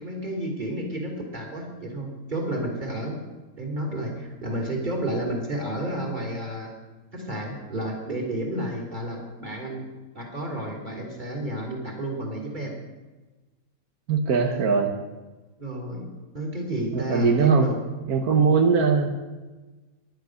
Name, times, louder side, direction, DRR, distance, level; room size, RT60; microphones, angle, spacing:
voice 1, 0.0-3.2 3.6-6.7 7.1-9.8 10.1-12.7 15.6-16.1 16.3-17.8, right 1 dB, 30° right, 0 dB, 3.4 m, -31 dB
voice 2, 14.1-14.9 16.9-17.7 18.1-19.2, right 5 dB, 85° right, 4 dB, 1.7 m, -20 dB
14.5 x 11.0 x 6.5 m, 1.2 s
omnidirectional pair, 1.5 m